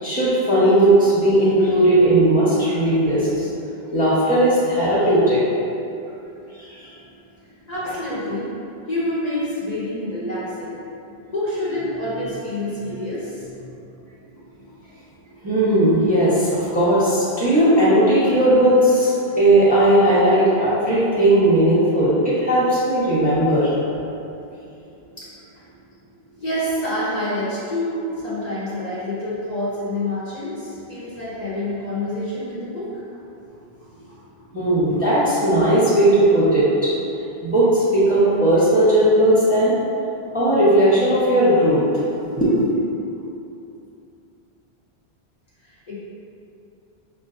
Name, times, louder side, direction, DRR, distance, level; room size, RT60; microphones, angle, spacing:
voice 1, 0.0-3.5 3.9-5.4 6.5-6.9 15.4-23.7 34.5-36.9 37.4-39.7 40.3-41.8 42.2-42.7, right 1 dB, 10° right, -11 dB, 0.8 m, -17 dB
voice 2, 7.7-8.5 8.9-10.8 11.1-13.6 25.2-25.3 26.4-33.0 45.7-45.9, left 1 dB, 40° left, -11 dB, 0.8 m, -27 dB
5.4 x 2.4 x 2.5 m, 2.7 s
omnidirectional pair, 1.1 m